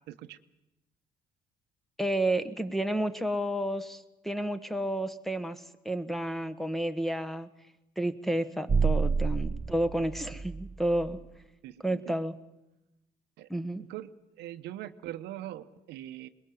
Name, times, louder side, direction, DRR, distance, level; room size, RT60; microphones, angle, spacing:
voice 1, 0.1-0.4 11.6-12.1 13.4-13.5 13.9-14.1 14.4-16.3, right 13 dB, 85° right, 11 dB, 0.9 m, -41 dB
voice 2, 2.0-7.5 8.0-11.2 11.8-12.3 13.5-13.8, right 1 dB, ahead, 11 dB, 1.2 m, -31 dB
sound 1, 8.7-11.1, right 5 dB, 20° right, 0.8 m, -29 dB
22.5 x 21.0 x 7.8 m, 0.95 s
cardioid pair, 110°, 17 cm